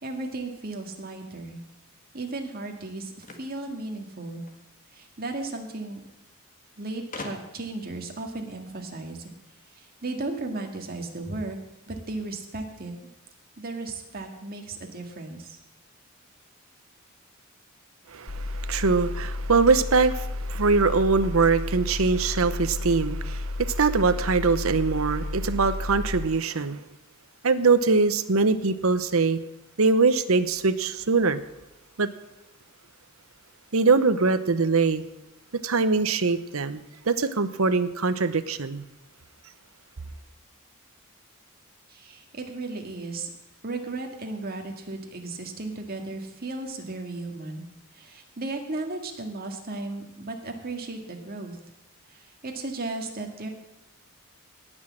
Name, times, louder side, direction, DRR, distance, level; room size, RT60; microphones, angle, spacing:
voice 1, 0.0-1.6 2.1-4.4 4.9-6.0 6.8-9.3 9.7-11.6 11.9-12.9 13.6-15.6 41.9-43.3 43.6-47.7 47.9-51.6 52.1-53.5, right 2 dB, 45° right, 3 dB, 1.9 m, -35 dB
sound 1, 3.2-4.6 5.7-5.8 6.0-6.1 7.1-7.8, left 3 dB, 40° left, 1.6 m, -41 dB
voice 2, 18.1-26.8 27.4-29.4 29.8-31.4 32.0-32.1 33.7-35.0 35.6-38.8, right 4 dB, 80° right, 12 dB, 0.8 m, -23 dB
sound 2, 18.3-26.3, left 2 dB, 70° left, 1.0 m, -32 dB
17.5 x 6.3 x 7.5 m, 0.94 s
head